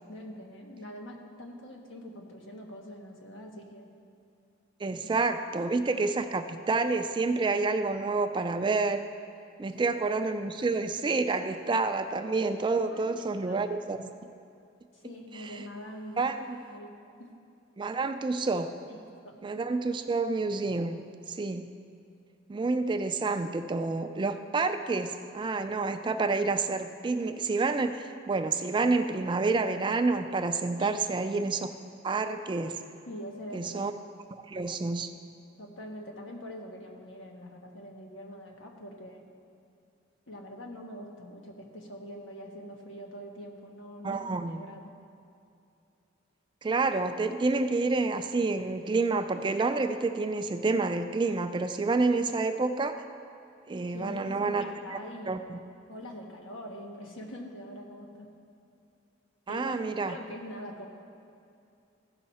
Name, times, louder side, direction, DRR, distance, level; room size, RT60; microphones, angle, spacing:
voice 1, 0.1-3.9 5.0-5.1 5.5-6.0 9.7-10.0 12.9-13.6 14.9-16.2 16.7-16.9 17.2-17.3 18.9-19.4 30.8-31.0 33.1-33.9 35.6-39.3 40.3-44.8 53.9-55.5 55.9-58.3 59.5-60.9, equal, 80° left, 0 dB, 1.3 m, -44 dB
voice 2, 4.8-9.0 9.6-14.1 15.3-15.6 16.2-16.6 17.8-18.7 19.4-21.0 21.3-21.7 22.5-31.7 32.0-32.8 33.5-33.9 34.3-35.1 44.0-44.6 46.6-53.0 53.7-54.7 55.3-55.6 59.5-60.2, right 3 dB, 25° right, 7 dB, 0.3 m, -29 dB
15.0 x 5.6 x 4.2 m, 2.6 s
head